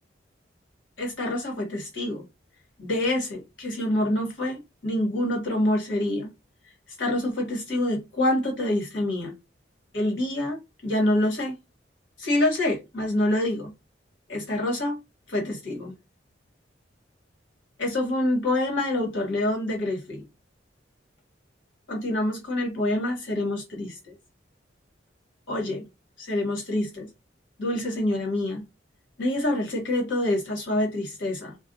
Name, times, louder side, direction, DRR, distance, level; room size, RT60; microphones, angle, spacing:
voice 1, 1.0-2.2 2.8-6.3 7.0-9.3 9.9-11.5 12.2-13.7 14.3-15.0 15.3-15.9 17.8-20.2 21.9-24.2 25.5-25.8 26.2-27.1 27.6-28.6 29.2-31.5, left 1 dB, 80° left, 1.3 m, -26 dB
4.0 x 2.3 x 2.7 m
head